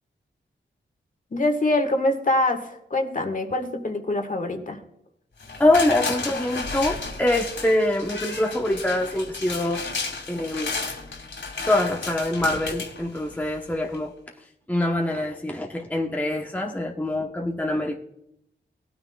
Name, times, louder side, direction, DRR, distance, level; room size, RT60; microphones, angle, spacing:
voice 1, 1.3-4.8, left 1 dB, 45° left, 5 dB, 1.6 m, -24 dB
sound 1, 5.4-13.6 13.9-14.0, left 4 dB, 75° left, 2.4 m, -33 dB
voice 2, 5.6-9.8 10.3-10.7 11.7-14.1 14.7-18.0, left 1 dB, 10° left, 0 dB, 1.0 m, -24 dB
18.5 x 9.3 x 2.3 m, 0.80 s
wide cardioid pair, 95°, 19 cm